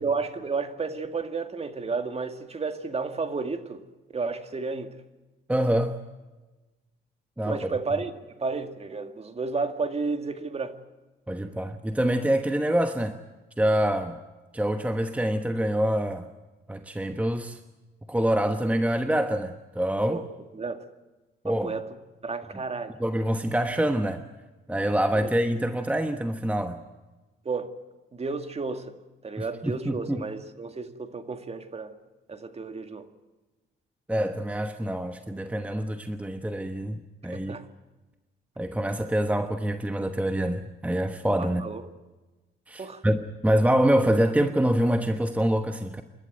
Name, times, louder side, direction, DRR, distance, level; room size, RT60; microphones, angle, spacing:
voice 1, 0.0-3.8 4.1-4.9 7.4-10.8 20.1-20.2 20.5-20.8 21.5-21.9 22.2-23.0 25.2-25.3 27.5-27.8 28.1-28.9 29.2-31.9 32.3-33.1 37.3-37.6 41.4-41.8 42.8-43.0, right 4 dB, 30° right, 2.0 m, -32 dB
voice 2, 5.5-6.0 7.4-7.7 11.3-13.2 13.6-14.2 14.5-16.3 16.7-17.6 18.1-20.3 21.4-21.7 22.5-22.6 23.0-24.2 24.7-26.8 29.4-30.2 34.1-37.6 38.6-41.6 42.7-46.0, right 1 dB, 5° right, 1.1 m, -26 dB
28.0 x 12.5 x 9.3 m
cardioid pair, 90°, 20 cm